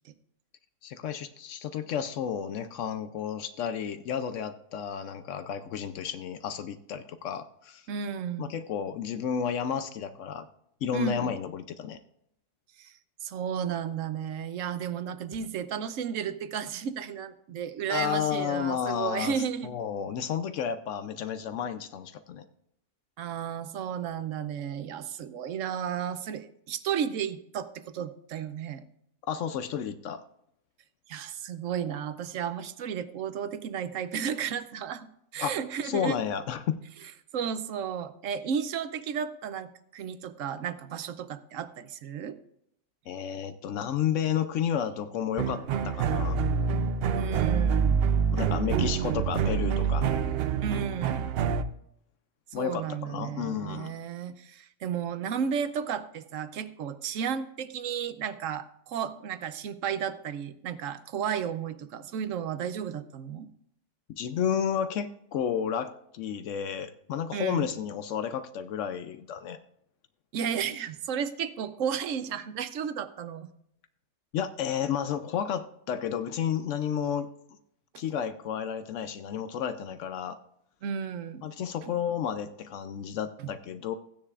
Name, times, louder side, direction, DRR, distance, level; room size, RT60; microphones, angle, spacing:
voice 1, 0.8-7.9 8.4-10.5 10.8-12.0 17.9-19.3 19.6-22.4 29.3-30.2 35.4-35.6 35.8-36.8 43.1-46.4 48.3-50.1 52.5-53.9 64.1-69.6 74.3-77.3 78.0-80.4 81.4-83.9, left 8 dB, 75° left, 11 dB, 0.9 m, -32 dB
voice 2, 7.9-8.5 10.9-11.3 12.8-19.7 23.2-28.8 31.1-35.1 35.3-36.2 37.3-42.4 47.2-48.1 50.6-51.3 52.5-63.5 67.3-67.7 70.3-73.5 77.9-78.0 80.8-81.5 81.8-81.9 83.4-83.5, right 8 dB, 85° right, 12 dB, 1.0 m, -33 dB
sound 1, 45.4-51.6, right 6 dB, 60° right, 0.7 m, -26 dB
15.5 x 9.7 x 2.4 m, 0.75 s
omnidirectional pair, 1.3 m